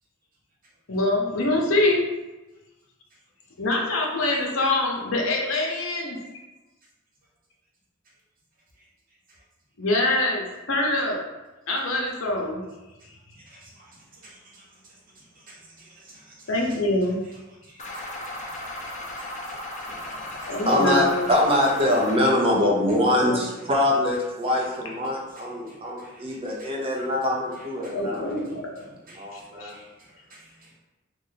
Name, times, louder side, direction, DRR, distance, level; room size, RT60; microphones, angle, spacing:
voice 1, 0.9-2.0 3.6-6.2 9.8-11.2 11.7-12.6 13.3-13.4 16.5-17.2 20.5-21.3 22.6-22.7 23.2-23.4 27.9-28.7 29.3-29.7, left 2 dB, 75° left, -1 dB, 0.7 m, -24 dB
voice 2, 13.4-16.5 17.6-20.6 25.3-26.7 27.8-28.0 29.1-30.8, right 1 dB, 45° right, -5 dB, 1.0 m, -52 dB
sound 1, 17.8-22.2, left 1 dB, 35° left, 0.6 m, -36 dB
voice 3, 20.4-28.2 29.1-29.7, left 1 dB, 30° right, -2 dB, 0.6 m, -24 dB
3.1 x 2.4 x 3.9 m, 1.1 s
head